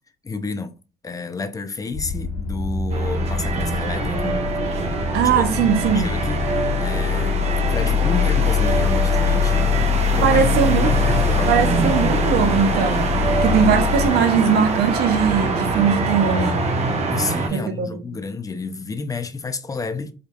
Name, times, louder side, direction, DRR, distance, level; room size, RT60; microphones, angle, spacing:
voice 1, 0.2-0.8 1.0-4.5 5.3-5.5 5.8-6.5 6.8-12.0 17.1-20.1, left 4 dB, 20° left, 0.5 m, -30 dB
sound 1, 1.9-14.1, left 7 dB, 80° left, 0.9 m, -23 dB
sound 2, 2.9-17.5, right 3 dB, 40° right, 1.0 m, -24 dB
voice 2, 5.1-6.0 10.2-11.2 11.4-13.1 13.4-16.6 17.5-18.0, right 7 dB, 75° right, 0.8 m, -20 dB
5.0 x 2.6 x 2.4 m
cardioid pair, 110°, 17 cm